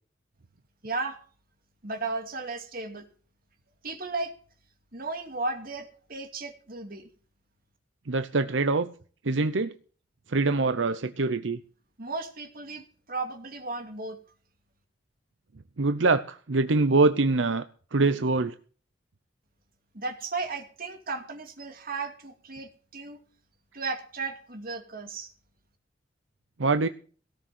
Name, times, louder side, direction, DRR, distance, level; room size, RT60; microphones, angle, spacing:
voice 1, 0.8-1.2 1.8-3.1 3.8-4.3 4.9-7.1 12.0-14.2 19.9-23.2 23.7-25.3, right 3 dB, 50° right, 5 dB, 2.4 m, -35 dB
voice 2, 8.1-8.9 9.2-9.7 10.3-11.6 15.8-17.6 17.9-18.5 26.6-26.9, right 3 dB, 85° right, 10 dB, 0.8 m, -24 dB
18.0 x 6.6 x 7.6 m, 0.42 s
head